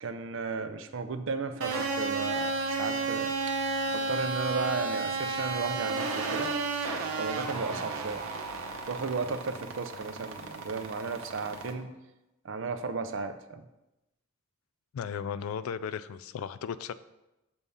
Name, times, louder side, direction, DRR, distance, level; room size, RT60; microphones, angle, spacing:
voice 1, 0.0-3.6 3.9-6.5 7.2-8.3 8.9-12.0 12.4-13.7, right 4 dB, 60° right, 9 dB, 0.5 m, -34 dB
sound 1, 1.6-11.7, right 3 dB, 85° right, 0.8 m, -33 dB
voice 2, 14.9-16.9, left 7 dB, 85° left, 15 dB, 0.3 m, -35 dB
6.8 x 3.5 x 5.4 m, 0.96 s
head